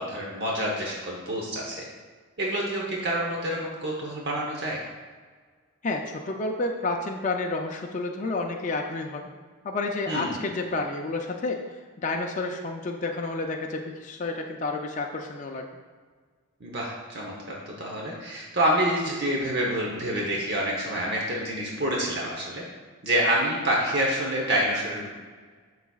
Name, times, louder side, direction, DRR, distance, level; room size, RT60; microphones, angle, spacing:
voice 1, 0.0-1.8 2.4-4.8 10.1-10.4 16.6-22.6 23.0-25.1, right 1 dB, 50° right, -2 dB, 0.9 m, -27 dB
voice 2, 5.8-9.3 9.6-11.6 12.0-15.6, left 3 dB, 35° left, 2 dB, 0.4 m, -30 dB
11.5 x 4.0 x 2.3 m, 1.5 s
head